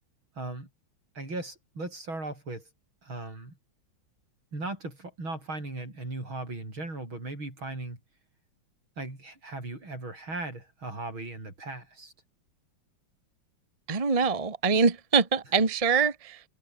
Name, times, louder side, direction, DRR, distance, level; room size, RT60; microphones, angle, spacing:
voice 1, 0.4-0.7 1.1-2.7 3.0-3.6 4.5-8.0 9.0-12.1, right 2 dB, 75° right, 9.0 m, -37 dB
voice 2, 13.9-16.4, right 5 dB, 20° right, 1.4 m, -24 dB
omnidirectional pair, 2.2 m